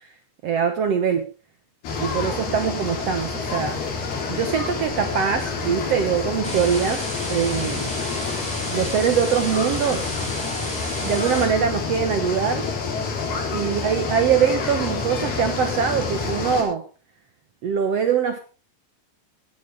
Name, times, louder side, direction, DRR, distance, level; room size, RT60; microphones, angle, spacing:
voice 1, 0.4-1.3 2.0-3.8 4.3-7.9 8.7-10.1 10.9-12.7 13.5-16.8 17.6-18.4, right 7 dB, 80° right, 8 dB, 1.4 m, -23 dB
sound 1, 1.8-16.6, left 4 dB, 70° left, 5.6 m, -28 dB
sound 2, 6.4-11.4, equal, ahead, 6.0 m, -33 dB
17.0 x 12.5 x 3.5 m, 0.35 s
omnidirectional pair, 4.6 m